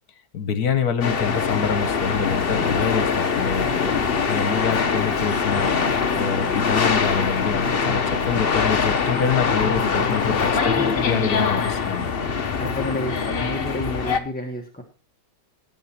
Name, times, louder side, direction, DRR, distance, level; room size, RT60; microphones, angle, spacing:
voice 1, 0.3-4.0 4.3-5.8 6.2-12.1, left 6 dB, 60° left, 12 dB, 1.6 m, -26 dB
sound 1, 1.0-14.2, left 5 dB, 40° left, 1.0 m, -23 dB
voice 2, 10.7-11.0 12.6-14.8, left 1 dB, 5° left, 0 dB, 1.2 m, -30 dB
18.0 x 6.7 x 4.4 m, 0.34 s
omnidirectional pair, 1.9 m